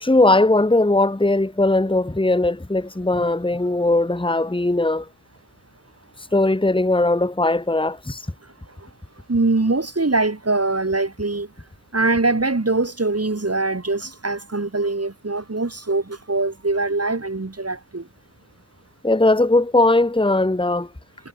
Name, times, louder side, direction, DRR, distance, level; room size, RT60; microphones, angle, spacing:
voice 1, 0.0-5.1 6.3-8.2 19.0-20.9, left 2 dB, 10° left, 1.5 m, -19 dB
voice 2, 9.3-11.5 11.9-18.1, right 3 dB, 35° right, 2.8 m, -23 dB
cardioid pair, 45°, 41 cm